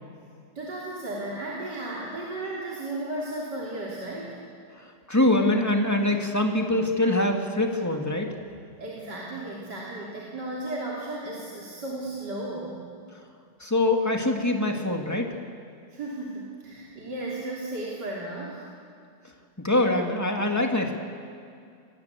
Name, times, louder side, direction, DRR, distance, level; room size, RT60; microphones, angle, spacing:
voice 1, 0.6-4.4 8.8-12.8 15.9-18.7, right 2 dB, 50° right, -5 dB, 3.9 m, -34 dB
voice 2, 5.1-8.3 13.6-15.3 19.6-20.9, left 1 dB, 10° left, 3 dB, 2.3 m, -24 dB
29.0 x 22.0 x 8.4 m, 2.4 s
omnidirectional pair, 2.3 m